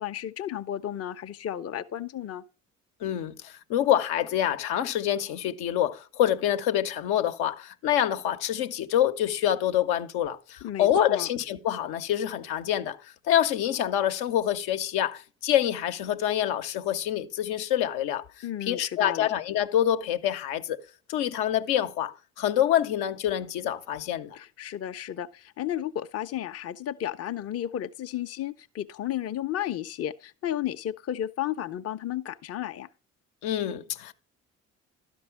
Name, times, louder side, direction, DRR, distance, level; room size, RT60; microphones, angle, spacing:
voice 1, 0.0-2.4 10.6-11.3 18.4-19.3 24.4-32.9, left 11 dB, 40° left, 0.7 m, -33 dB
voice 2, 3.0-13.0 13.3-18.3 18.7-20.8 21.1-24.4 33.4-34.1, left 11 dB, 70° left, 0.8 m, -26 dB
12.0 x 5.4 x 4.6 m
hypercardioid pair, 50°, 39 cm